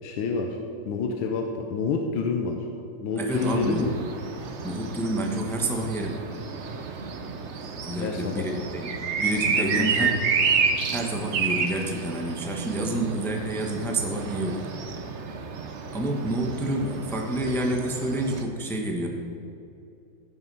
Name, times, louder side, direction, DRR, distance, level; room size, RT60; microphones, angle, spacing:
voice 1, 0.0-0.6 0.9-2.6 3.0-4.0 7.9-8.5 9.6-10.1, left 4 dB, 80° left, 2 dB, 1.6 m, -28 dB
voice 2, 3.2-3.9 4.6-6.2 7.8-8.9 9.2-10.1 10.9-14.7 15.9-19.1, right 1 dB, 5° left, 1 dB, 0.4 m, -29 dB
sound 1, 3.3-18.4, right 5 dB, 70° right, 0.6 m, -30 dB
15.5 x 6.0 x 5.4 m, 2.8 s
omnidirectional pair, 2.2 m